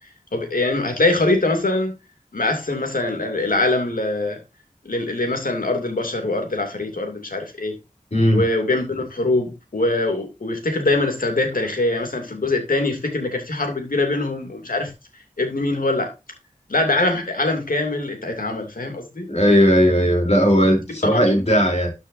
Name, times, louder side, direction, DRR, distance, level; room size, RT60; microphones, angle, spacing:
voice 1, 0.3-1.9 2.3-4.4 4.8-7.7 8.3-14.9 15.4-16.1 16.7-19.3 21.0-21.6, left 2 dB, 85° left, 2.7 m, -23 dB
voice 2, 8.1-8.4 19.3-21.9, equal, 50° left, 3.4 m, -17 dB
13.0 x 6.3 x 2.7 m
wide cardioid pair, 55°, 14 cm